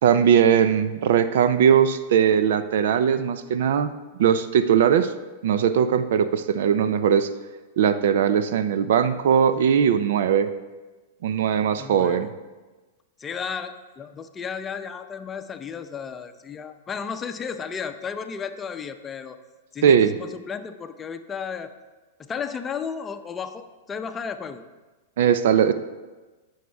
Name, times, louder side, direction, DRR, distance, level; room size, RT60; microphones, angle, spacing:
voice 1, 0.0-3.9 4.2-5.1 5.4-7.3 7.8-10.5 11.2-12.3 19.8-20.2 25.2-25.7, right 8 dB, 65° right, 12 dB, 0.6 m, -19 dB
voice 2, 11.8-12.3 13.2-19.4 19.7-21.7 22.2-24.6, left 6 dB, 20° left, 9 dB, 0.7 m, -34 dB
17.5 x 6.4 x 3.5 m, 1.2 s
hypercardioid pair, 110°, 0 cm